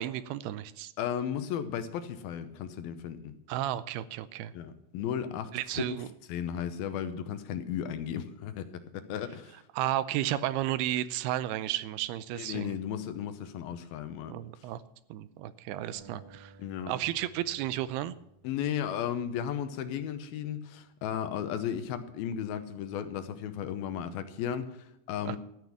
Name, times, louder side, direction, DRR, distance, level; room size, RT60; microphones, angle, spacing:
voice 1, 0.0-0.9 3.5-4.5 5.5-6.1 9.7-12.8 14.3-14.8 15.1-16.5 16.9-18.1 25.3-25.4, right 13 dB, 80° right, 15 dB, 2.5 m, -33 dB
voice 2, 1.0-3.3 4.5-6.0 6.3-9.6 12.3-14.7 16.6-16.9 18.4-25.4, left 9 dB, 75° left, 10 dB, 2.5 m, -35 dB
sound 1, 15.9-19.2, right 3 dB, 30° right, 4.4 m, -56 dB
13.5 x 9.8 x 7.2 m, 0.81 s
omnidirectional pair, 4.7 m